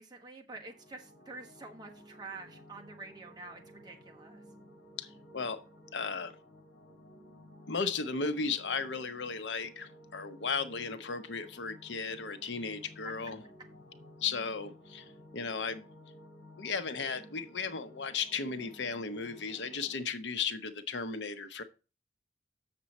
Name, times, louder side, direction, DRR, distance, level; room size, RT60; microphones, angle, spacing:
voice 1, 0.0-4.4, right 3 dB, 25° right, 1.4 m, -48 dB
sound 1, 0.5-19.9, equal, 60° left, 2.5 m, -55 dB
voice 2, 5.0-5.6 5.9-6.4 7.7-13.4 14.2-15.9 16.6-21.6, left 5 dB, 80° left, 0.8 m, -35 dB
7.5 x 6.8 x 4.1 m
head